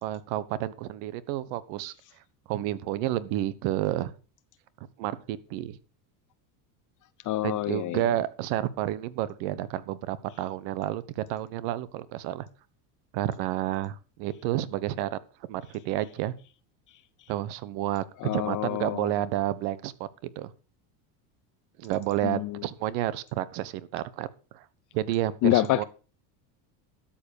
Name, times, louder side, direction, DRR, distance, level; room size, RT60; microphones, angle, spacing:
voice 1, 0.0-1.9 2.5-4.1 5.0-5.8 7.4-12.5 13.1-15.2 15.5-16.3 17.3-18.0 18.3-20.5 21.8-24.3 24.5-24.6 24.9-25.8, right 13 dB, 70° right, 1.3 m, -30 dB
voice 2, 7.2-8.0 18.2-19.1 22.2-22.6 25.4-25.8, left 16 dB, 40° left, 0.6 m, -27 dB
12.5 x 7.5 x 6.7 m
supercardioid pair, 130°, 48 cm